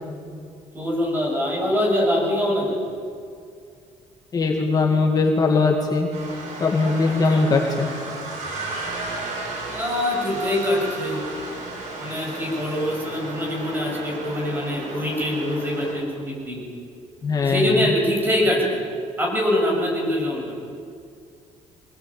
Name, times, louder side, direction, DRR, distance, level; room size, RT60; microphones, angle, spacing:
voice 1, 0.7-2.8 7.3-7.5 9.7-11.2 12.0-16.6 17.4-18.8 19.2-20.5, left 1 dB, 15° right, -1 dB, 7.4 m, -24 dB
voice 2, 4.3-6.1 6.6-7.9 17.2-17.9, left 3 dB, 30° left, 1 dB, 2.2 m, -20 dB
sound 1, 6.1-15.9, right 2 dB, 80° right, 7.7 m, -34 dB
24.0 x 20.0 x 8.9 m, 2.3 s
cardioid pair, 145°, 12 cm